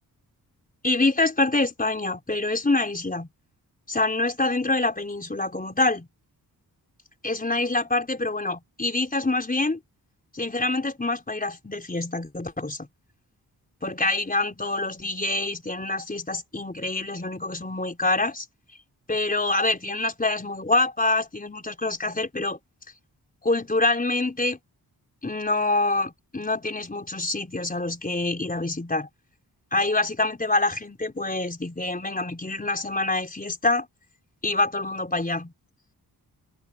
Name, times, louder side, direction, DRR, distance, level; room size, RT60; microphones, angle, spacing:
voice 1, 0.8-3.3 3.9-6.1 7.2-9.8 10.3-12.9 13.8-18.4 19.1-22.6 23.4-24.6 25.2-29.1 29.7-33.9 34.4-35.5, left 2 dB, 20° left, 4.7 m, -26 dB
wide cardioid pair, 100°, 38 cm